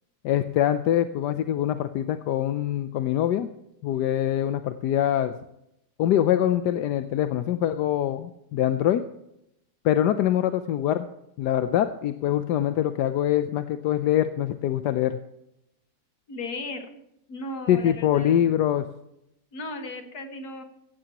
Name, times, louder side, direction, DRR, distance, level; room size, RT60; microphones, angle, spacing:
voice 1, 0.2-3.5 3.8-5.3 6.0-9.0 9.8-11.1 11.4-15.2 17.7-18.9, left 11 dB, 90° left, 9 dB, 1.3 m, -24 dB
voice 2, 16.3-17.0 17.3-18.6 19.5-20.6, left 2 dB, 70° left, 5 dB, 2.2 m, -36 dB
16.0 x 15.5 x 2.9 m, 0.81 s
omnidirectional pair, 1.7 m